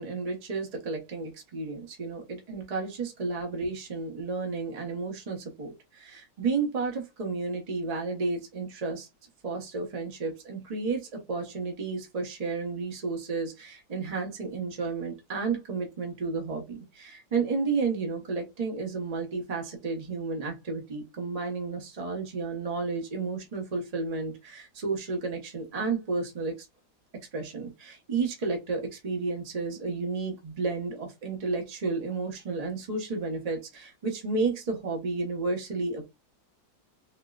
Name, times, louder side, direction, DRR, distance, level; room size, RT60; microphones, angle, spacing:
voice 1, 0.0-9.1 9.4-26.6 27.3-36.1, right 4 dB, 30° right, 0.8 m, -32 dB
4.4 x 2.2 x 2.3 m
omnidirectional pair, 2.0 m